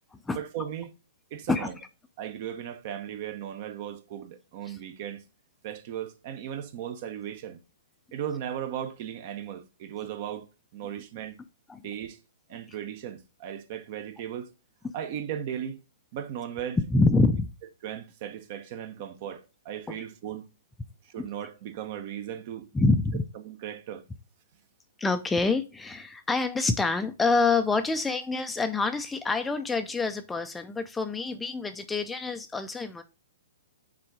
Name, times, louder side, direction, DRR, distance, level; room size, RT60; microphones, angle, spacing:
voice 1, 0.3-0.9 1.3-1.7 2.2-5.2 5.6-7.6 8.1-10.5 10.7-11.4 11.8-12.2 12.5-14.5 14.9-15.8 16.1-16.8 17.8-20.5 21.1-22.7 23.4-24.0, right 9 dB, 45° right, 0.9 m, -36 dB
voice 2, 16.9-17.5 19.9-20.0 22.7-23.2 25.0-33.0, left 3 dB, 10° left, 0.5 m, -26 dB
6.0 x 3.8 x 4.7 m
hypercardioid pair, 140°, 0 cm